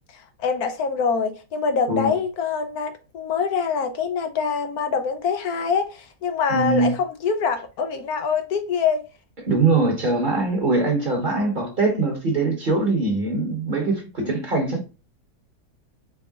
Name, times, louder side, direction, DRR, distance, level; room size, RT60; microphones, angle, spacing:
voice 1, 0.4-9.0, left 5 dB, 75° left, 1.1 m, -24 dB
voice 2, 6.5-6.9 9.4-14.9, right 3 dB, 35° right, 1.1 m, -22 dB
4.7 x 3.6 x 2.3 m
omnidirectional pair, 1.7 m